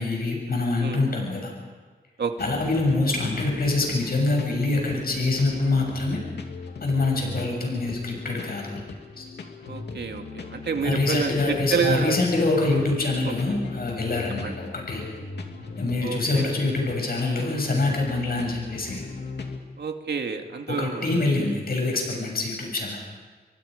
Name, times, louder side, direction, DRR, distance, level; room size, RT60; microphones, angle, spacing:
voice 1, 0.0-1.5 2.4-6.2 6.8-8.8 9.2-9.3 10.8-15.0 15.8-19.1 20.7-23.0, left 2 dB, 60° left, 0 dB, 7.2 m, -25 dB
sound 1, 2.4-19.6, left 4 dB, 80° left, 2.5 m, -37 dB
voice 2, 9.6-10.2 10.5-12.2 13.2-13.3 14.4-14.5 16.0-16.5 19.8-21.1, right 5 dB, 75° right, 4 dB, 2.2 m, -28 dB
29.0 x 23.0 x 5.2 m, 1.4 s
wide cardioid pair, 90°, 17 cm